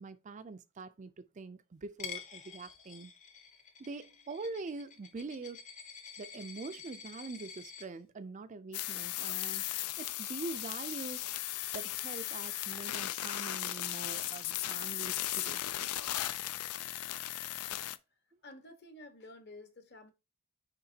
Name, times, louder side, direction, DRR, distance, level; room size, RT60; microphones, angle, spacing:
voice 1, 0.0-3.1 3.8-5.6 6.2-9.6 10.0-11.3 11.7-15.6, right 3 dB, 35° right, 0.4 m, -44 dB
Coin (dropping), 2.0-7.9, left 7 dB, 35° left, 0.8 m, -48 dB
sound 1, 8.7-18.0, left 14 dB, 85° left, 0.4 m, -37 dB
voice 2, 18.4-20.1, left 2 dB, 50° left, 1.1 m, -51 dB
9.5 x 3.6 x 2.8 m
head